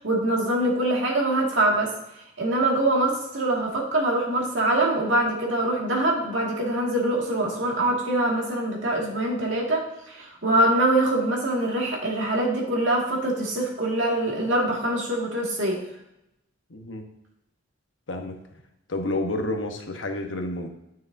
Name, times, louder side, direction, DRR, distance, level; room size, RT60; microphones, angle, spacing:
voice 1, 0.0-1.9 2.4-15.8, right 1 dB, 85° right, -2 dB, 2.1 m, -24 dB
voice 2, 16.7-17.1 18.1-18.4 18.9-20.7, left 2 dB, 90° left, 4 dB, 1.1 m, -29 dB
9.6 x 6.3 x 2.7 m, 0.85 s
head